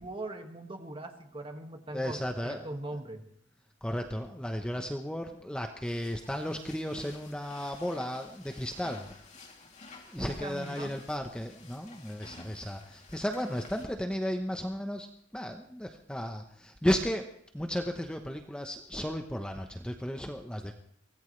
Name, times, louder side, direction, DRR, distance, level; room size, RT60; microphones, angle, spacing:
voice 1, 0.0-3.2 10.2-10.9, right 2 dB, 30° right, 4 dB, 1.9 m, -40 dB
voice 2, 1.9-2.7 3.8-9.1 10.1-17.3 17.5-20.7, equal, 5° left, 4 dB, 1.0 m, -34 dB
sound 1, 5.8-13.9, left 3 dB, 40° left, 2.9 m, -52 dB
24.0 x 18.0 x 3.3 m, 0.67 s
head